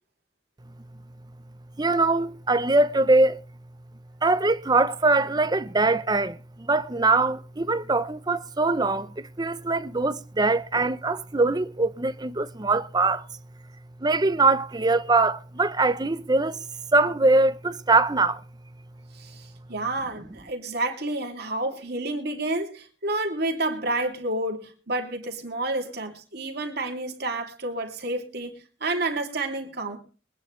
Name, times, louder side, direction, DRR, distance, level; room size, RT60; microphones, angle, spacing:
voice 1, 1.8-3.4 4.2-13.2 14.0-16.6 16.9-18.4, right 3 dB, 20° right, 0.7 m, -22 dB
voice 2, 19.1-28.5 28.8-30.0, right 2 dB, 60° right, 2.8 m, -30 dB
22.5 x 9.8 x 3.2 m
head